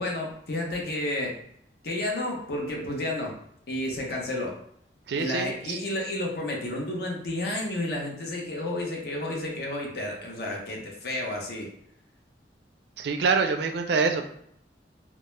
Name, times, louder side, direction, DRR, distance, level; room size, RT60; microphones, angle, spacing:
voice 1, 0.0-1.3 1.8-3.3 3.7-4.5 5.2-11.7, left 1 dB, 60° left, -1 dB, 0.6 m, -31 dB
voice 2, 5.1-5.8 13.0-14.3, right 4 dB, 65° right, 6 dB, 0.3 m, -26 dB
2.2 x 2.0 x 3.0 m, 0.70 s
head